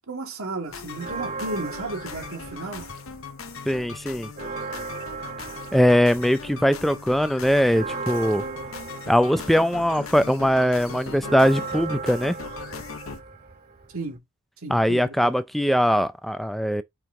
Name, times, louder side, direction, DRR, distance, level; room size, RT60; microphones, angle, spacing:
voice 1, 0.1-2.8 13.9-14.2 14.6-15.3, right 3 dB, 75° right, 2.1 m, -33 dB
sound 1, 0.7-13.2, left 5 dB, 65° left, 0.9 m, -39 dB
Church bell, 0.9-3.3 3.7-3.8 4.1-14.2, right 4 dB, 40° right, 3.0 m, -37 dB
voice 2, 3.7-4.3 5.7-8.4 9.1-12.4 14.7-16.8, equal, ahead, 0.4 m, -21 dB
5.6 x 4.7 x 3.8 m
head